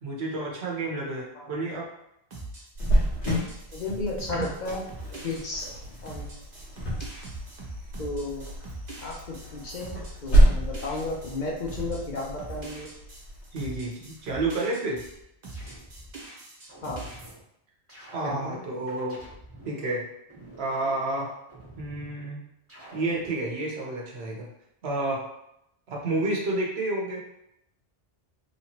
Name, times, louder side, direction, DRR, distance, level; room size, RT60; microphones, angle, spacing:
voice 1, 0.0-1.9 4.3-4.5 13.5-15.0 18.1-19.2 19.7-20.1 20.6-21.3 21.8-22.4 22.9-24.5 24.8-25.2 25.9-27.2, right 2 dB, 75° right, -2 dB, 1.1 m, -30 dB
sound 1, 2.3-15.1 15.4-17.3, right 2 dB, 45° right, 0.9 m, -42 dB
Cricket, 2.7-14.2, right 1 dB, 85° left, 1.5 m, -28 dB
voice 2, 3.7-4.8 5.2-5.7 6.0-6.3 8.0-8.4 9.0-12.9 16.8-17.1 18.2-18.6, left 2 dB, 50° left, -3 dB, 0.7 m, -33 dB
sound 2, 14.9-16.2 16.7-17.4 17.9-19.8 20.3-22.2 22.7-23.4, right 1 dB, 15° right, 1.1 m, -47 dB
3.3 x 3.0 x 2.8 m, 0.79 s
omnidirectional pair, 1.1 m